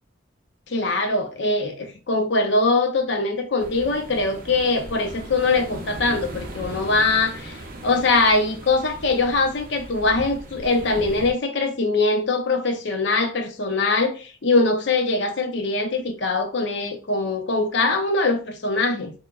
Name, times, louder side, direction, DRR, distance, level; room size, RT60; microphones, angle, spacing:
voice 1, 0.7-19.1, left 3 dB, 70° left, 0.7 m, -22 dB
sound 1, 3.6-11.3, right 1 dB, 50° right, 0.7 m, -38 dB
4.6 x 2.1 x 2.3 m
head